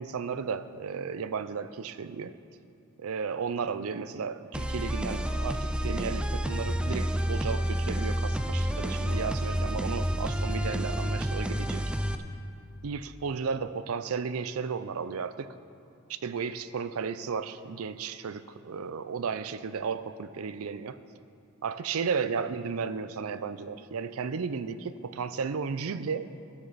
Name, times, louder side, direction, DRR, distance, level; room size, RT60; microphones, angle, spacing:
voice 1, 0.0-2.3 3.0-11.8 12.8-15.5 16.1-21.0 21.6-26.3, right 5 dB, 80° right, 13 dB, 0.5 m, -34 dB
sound 1, 4.5-12.1, equal, 5° right, 0.3 m, -29 dB
15.0 x 9.6 x 4.1 m, 2.5 s
head